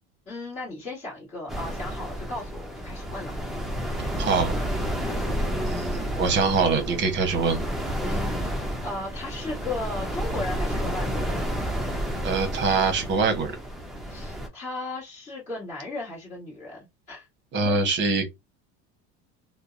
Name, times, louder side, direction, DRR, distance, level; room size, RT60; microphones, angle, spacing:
voice 1, 0.3-3.4 8.0-11.5 14.1-17.3 17.6-17.9, left 2 dB, 20° left, 1.2 m, -36 dB
sound 1, 1.5-14.5, equal, ahead, 0.4 m, -30 dB
voice 2, 4.2-4.5 5.5-7.6 12.2-13.5 17.5-18.3, right 4 dB, 35° right, 0.8 m, -24 dB
2.6 x 2.0 x 2.4 m
cardioid pair, 135°, 32 cm